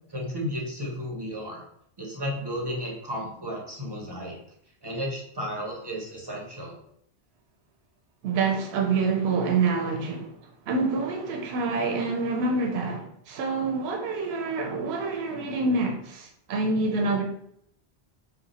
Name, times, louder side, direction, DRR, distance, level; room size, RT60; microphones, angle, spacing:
voice 1, 0.1-1.6 2.0-4.4 4.8-6.7, equal, 25° right, 0.6 m, -33 dB
voice 2, 8.2-10.4 10.7-17.2, right 3 dB, 75° right, 0.8 m, -27 dB
2.8 x 2.3 x 4.0 m
omnidirectional pair, 1.1 m